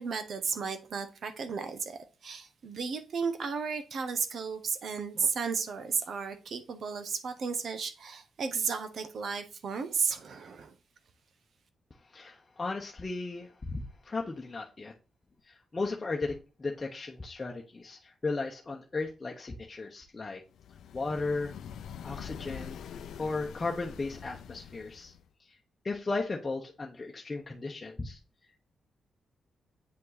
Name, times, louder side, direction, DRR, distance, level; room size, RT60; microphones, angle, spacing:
voice 1, 0.0-10.7, right 5 dB, 55° right, 1.0 m, -34 dB
voice 2, 12.1-14.9 15.5-20.4 20.9-21.5 22.0-22.8 23.2-25.1 25.8-28.2, left 3 dB, 25° left, 1.0 m, -35 dB
sound 1, 20.6-25.3, left 8 dB, 85° left, 0.6 m, -44 dB
8.3 x 5.2 x 4.1 m
wide cardioid pair, 140°, 0 cm